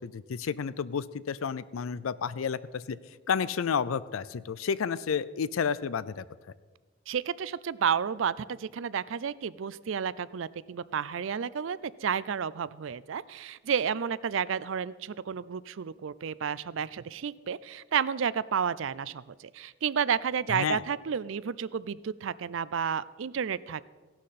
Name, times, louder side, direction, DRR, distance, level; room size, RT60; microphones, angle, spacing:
voice 1, 0.0-3.0 3.3-6.2 20.5-20.8, left 6 dB, 90° left, 17 dB, 0.5 m, -31 dB
voice 2, 7.1-23.8, right 7 dB, 70° right, 18 dB, 0.4 m, -31 dB
16.5 x 11.5 x 4.2 m, 1.3 s
head